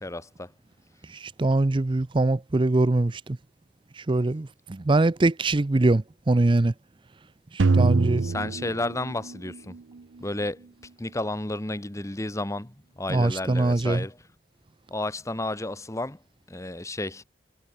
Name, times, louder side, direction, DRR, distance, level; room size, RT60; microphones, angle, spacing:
voice 1, 0.0-0.5 8.2-9.8 10.2-10.7 11.0-14.3 14.9-16.2 16.5-17.2, left 2 dB, 15° left, 1.0 m, -32 dB
voice 2, 1.1-3.2 4.0-6.7 7.5-8.2 13.1-14.0, right 2 dB, 25° right, 0.5 m, -23 dB
sound 1, 7.6-9.8, right 3 dB, 85° right, 0.6 m, -24 dB
head